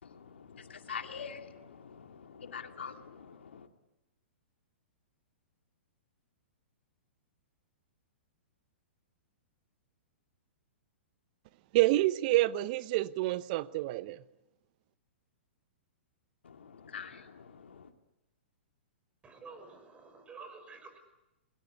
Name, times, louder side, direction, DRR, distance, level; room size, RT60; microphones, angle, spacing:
voice 1, 0.0-3.7 16.4-17.9, left 6 dB, 70° left, 2.4 m, -45 dB
voice 2, 11.7-14.2, right 17 dB, 45° right, 1.0 m, -28 dB
voice 3, 19.2-21.0, right 4 dB, 15° right, 6.0 m, -50 dB
28.5 x 22.0 x 8.3 m
figure-of-eight pair, 110°, 6 cm